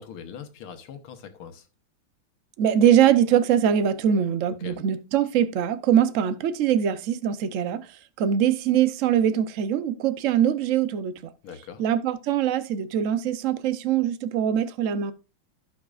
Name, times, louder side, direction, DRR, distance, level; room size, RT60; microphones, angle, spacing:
voice 1, 0.0-1.7 4.6-4.8 11.4-11.8, left 7 dB, 90° left, 2.1 m, -41 dB
voice 2, 2.6-11.3 11.8-15.1, right 9 dB, 75° right, 0.7 m, -22 dB
16.5 x 5.9 x 2.4 m
omnidirectional pair, 2.3 m